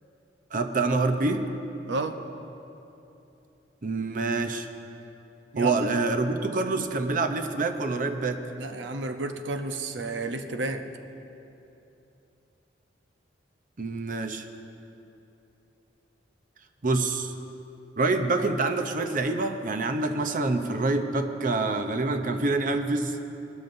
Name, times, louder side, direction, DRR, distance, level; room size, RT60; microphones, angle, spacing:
voice 1, 0.5-1.5 3.8-4.7 5.6-8.4 13.8-14.4 16.8-17.3 18.0-23.2, right 3 dB, 45° right, 7 dB, 0.7 m, -26 dB
voice 2, 1.9-2.2 5.5-5.8 8.6-10.9, right 2 dB, 80° right, 7 dB, 0.7 m, -31 dB
19.5 x 13.0 x 2.6 m, 2.9 s
head